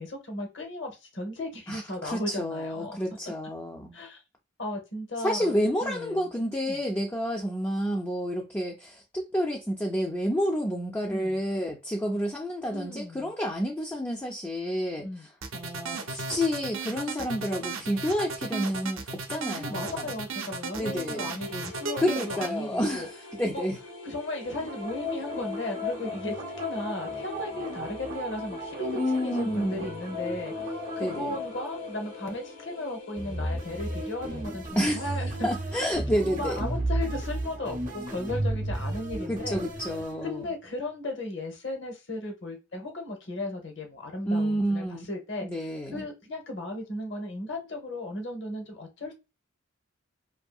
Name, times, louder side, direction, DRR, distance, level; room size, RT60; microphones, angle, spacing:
voice 1, 0.0-3.0 3.9-4.2 4.6-6.3 6.7-6.8 11.1-11.4 12.7-13.3 15.0-15.3 19.5-23.1 23.5-23.7 24.0-30.5 31.0-35.5 36.2-39.6 40.2-45.5 45.9-49.1, left 1 dB, 60° left, 0.8 m, -36 dB
voice 2, 1.7-4.0 5.2-20.1 20.8-21.3 22.0-23.8 28.9-29.8 31.0-31.3 34.8-35.1 35.4-36.6 39.3-40.4 44.3-45.1 45.4-46.1, equal, 10° left, 0.3 m, -29 dB
sound 1, 15.4-22.5, right 4 dB, 85° right, 0.6 m, -35 dB
sound 2, 21.4-34.4, left 3 dB, 85° left, 0.8 m, -44 dB
sound 3, 24.4-32.6 33.2-40.6, equal, 40° right, 0.7 m, -34 dB
2.7 x 2.6 x 2.2 m
head